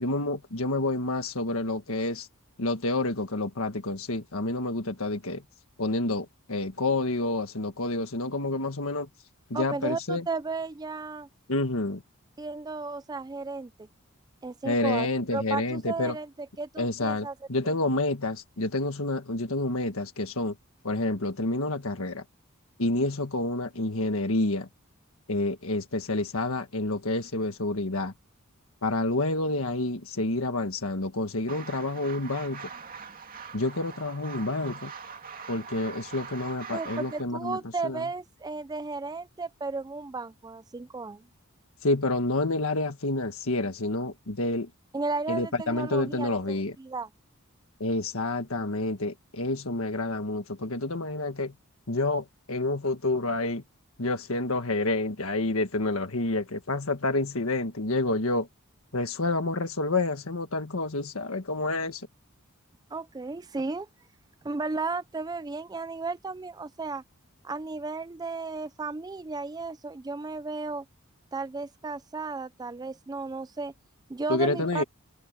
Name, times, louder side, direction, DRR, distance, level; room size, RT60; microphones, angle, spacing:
voice 1, 0.0-2.3 2.6-5.4 5.8-9.1 9.5-10.2 11.5-12.0 14.6-16.2 16.8-20.5 20.8-22.2 22.8-24.7 25.3-28.1 28.8-32.7 33.5-34.9 35.5-37.6 37.8-38.0 41.8-44.7 45.3-46.7 47.8-51.5 51.9-53.6 54.0-58.5 58.9-62.1 74.3-74.8, left 2 dB, 65° left, 1.6 m, -28 dB
voice 2, 9.5-11.3 12.4-13.9 14.4-15.1 15.3-16.3 16.6-17.3 36.7-41.2 44.9-47.1 62.9-63.9 64.4-67.0 67.4-70.8 71.3-73.7 74.1-74.8, right 3 dB, 20° right, 0.4 m, -34 dB
sound 1, 31.5-37.2, right 6 dB, 40° right, 2.5 m, -42 dB
head